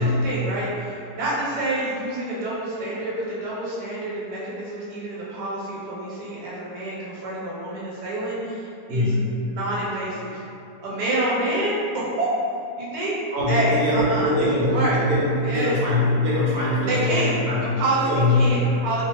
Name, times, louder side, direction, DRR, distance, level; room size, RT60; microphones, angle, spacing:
voice 1, 0.0-9.2 9.4-10.4 10.8-12.3 12.8-13.1 13.5-15.0 15.4-15.7 16.9-17.3 17.6-18.1 18.3-19.0, right 1 dB, 90° right, -7 dB, 1.3 m, -27 dB
voice 2, 8.9-9.3 13.3-18.5, left 1 dB, 70° right, -6 dB, 1.1 m, -22 dB
2.6 x 2.4 x 2.8 m, 2.6 s
omnidirectional pair, 1.8 m